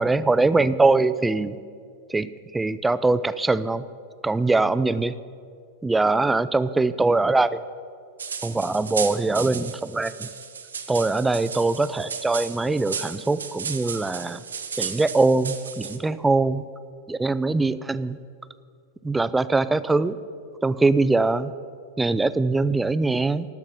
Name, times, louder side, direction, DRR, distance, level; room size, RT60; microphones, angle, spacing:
voice 1, 0.0-1.6 2.1-2.3 2.5-3.8 4.2-5.2 5.8-7.6 8.4-10.3 10.9-14.4 14.8-16.6 17.1-18.2 19.0-20.2 20.6-21.5 22.0-23.5, right 3 dB, 10° right, 15 dB, 0.3 m, -22 dB
sound 1, 8.2-16.0, right 6 dB, 70° right, 0.7 m, -34 dB
12.5 x 5.9 x 6.9 m, 2.2 s
figure-of-eight pair, 90°, 0 cm